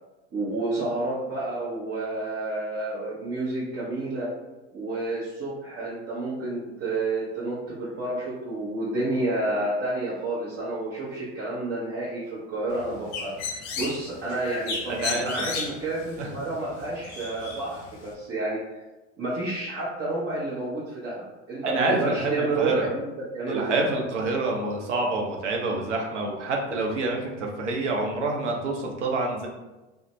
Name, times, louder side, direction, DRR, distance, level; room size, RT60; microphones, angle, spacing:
voice 1, 0.3-4.3 4.7-18.8 19.2-23.8, right 2 dB, 30° right, -9 dB, 0.8 m, -30 dB
Bird, 12.7-18.1, left 5 dB, 50° left, 0.6 m, -35 dB
voice 2, 14.9-15.5 16.2-16.3 21.6-22.9 23.5-29.5, right 2 dB, 85° right, 1 dB, 0.6 m, -27 dB
2.5 x 2.1 x 3.0 m, 1.1 s
hypercardioid pair, 75°, 35 cm